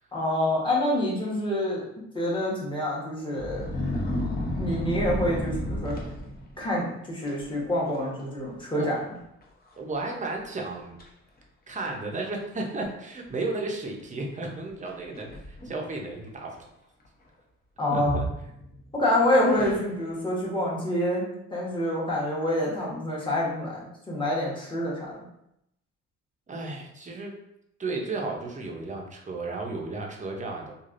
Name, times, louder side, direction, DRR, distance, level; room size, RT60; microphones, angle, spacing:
voice 1, 0.1-3.7 4.6-5.9 6.6-9.0 17.8-18.2 18.9-25.1, left 1 dB, 15° left, -5 dB, 1.1 m, -27 dB
sound 1, 3.4-6.6 7.3-7.5 7.8-8.3 8.5-8.6 9.4-9.5 10.0-10.1 10.6-11.1 11.9-12.0 14.9-15.9 17.9-18.9 19.4-20.2, left 1 dB, 30° left, 0.7 m, -32 dB
voice 2, 9.8-11.0 11.7-16.6 17.9-18.2 26.5-27.3 27.8-30.7, right 3 dB, 25° right, 0 dB, 0.6 m, -33 dB
3.2 x 2.4 x 2.5 m, 0.80 s
cardioid pair, 90°, 30 cm